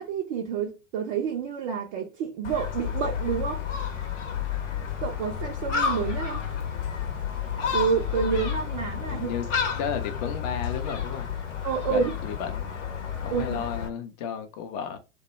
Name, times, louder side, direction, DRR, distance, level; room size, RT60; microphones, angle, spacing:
voice 1, 0.0-3.6 5.0-6.4 7.7-9.3 11.6-12.1 13.3-13.6, right 6 dB, 35° right, 0.4 m, -28 dB
Gull seagull, 2.4-13.9, left 7 dB, 65° left, 0.8 m, -31 dB
voice 2, 9.1-11.3 11.9-12.7 13.2-15.0, left 7 dB, 35° left, 0.4 m, -33 dB
2.1 x 2.1 x 2.9 m
figure-of-eight pair, 100°, 40 cm